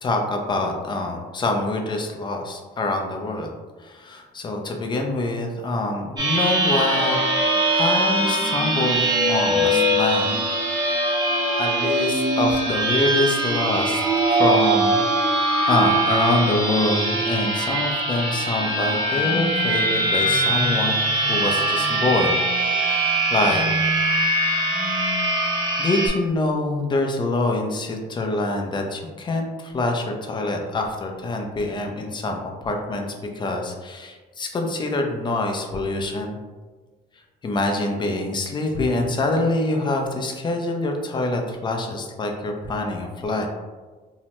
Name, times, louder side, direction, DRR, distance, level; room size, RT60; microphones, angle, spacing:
voice 1, 0.0-3.5 3.8-7.2 7.8-9.0 9.3-10.3 11.6-14.0 14.3-15.0 15.7-23.6 25.8-36.4 37.4-43.5, left 2 dB, 25° left, 2 dB, 0.4 m, -25 dB
sound 1, 6.2-26.1, right 1 dB, 25° right, 0.6 m, -22 dB
2.7 x 2.1 x 2.9 m, 1.3 s
cardioid pair, 110°, 17 cm